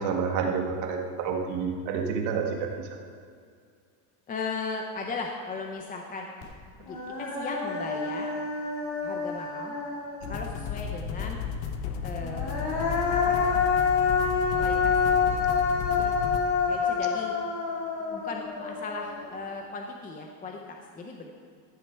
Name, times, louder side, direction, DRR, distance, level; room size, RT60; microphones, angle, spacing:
voice 1, 0.0-3.0 16.0-16.1, right 5 dB, 85° right, 2 dB, 1.7 m, -29 dB
voice 2, 4.3-6.3 6.8-8.4 9.0-9.8 10.3-11.4 12.0-13.4 14.6-15.2 16.7-17.4 18.0-21.3, left 3 dB, 15° left, 2 dB, 0.6 m, -37 dB
Human voice, 6.4-6.5 6.9-10.5 12.2-19.4, left 5 dB, 50° left, 2.8 m, -27 dB
sound 1, 10.2-16.4, left 6 dB, 85° left, 1.2 m, -34 dB
14.0 x 7.4 x 4.5 m, 2.2 s
cardioid pair, 150°, 50 cm